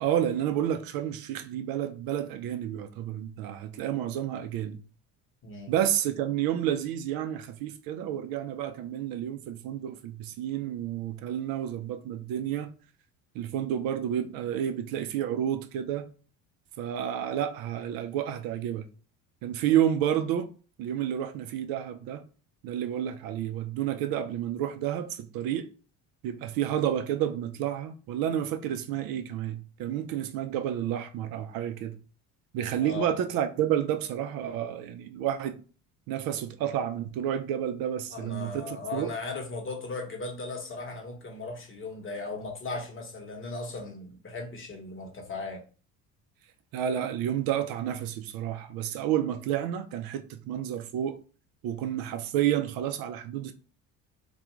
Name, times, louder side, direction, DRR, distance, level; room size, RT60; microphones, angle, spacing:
voice 1, 0.0-4.8 5.7-12.7 13.3-16.1 16.8-18.9 19.4-20.5 20.8-22.2 22.6-25.7 26.2-32.0 32.5-35.6 36.1-39.1 46.7-51.2 51.6-53.5, right 10 dB, 60° right, 0.5 m, -30 dB
voice 2, 5.4-5.7 32.8-33.1 38.1-45.6, left 3 dB, 30° left, 0.9 m, -37 dB
2.3 x 2.3 x 2.9 m
hypercardioid pair, 65°, 40 cm